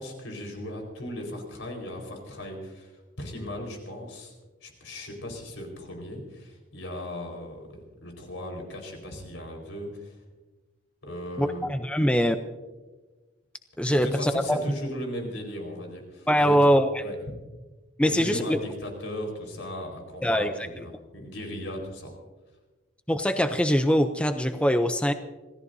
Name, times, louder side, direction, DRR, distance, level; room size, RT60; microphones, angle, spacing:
voice 1, 0.0-2.9 3.2-4.3 4.6-10.2 11.0-11.7 13.9-16.7 17.0-17.2 18.0-22.1, left 1 dB, 85° left, 2 dB, 4.6 m, -37 dB
voice 2, 11.4-12.4 13.8-14.6 16.3-17.0 18.0-18.6 20.2-20.7 23.1-25.1, equal, 5° left, 8 dB, 0.5 m, -23 dB
26.5 x 17.0 x 2.7 m, 1.2 s
head